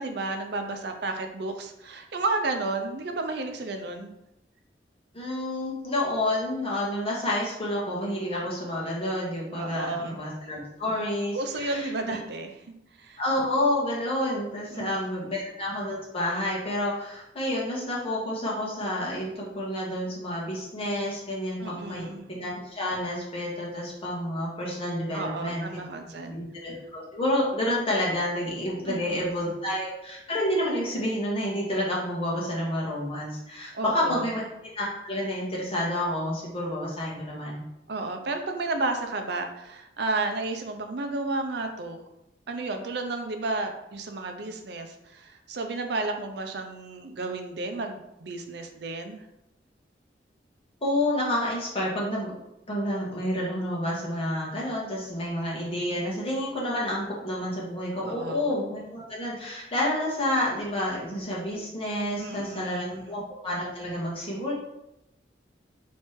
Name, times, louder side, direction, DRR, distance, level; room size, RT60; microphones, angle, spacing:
voice 1, 0.0-4.1 9.5-10.2 11.3-13.2 14.7-14.9 15.3-15.4 21.6-22.3 25.1-26.4 28.9-29.3 33.7-34.3 37.9-42.0 42.5-49.2 58.0-58.5 62.2-63.1, right 3 dB, 65° right, 5 dB, 0.6 m, -32 dB
voice 2, 5.1-12.2 13.2-25.6 26.2-34.4 34.7-37.6 50.8-52.4 52.7-64.5, left 1 dB, 35° left, -4 dB, 1.4 m, -29 dB
3.2 x 3.2 x 4.4 m, 0.86 s
head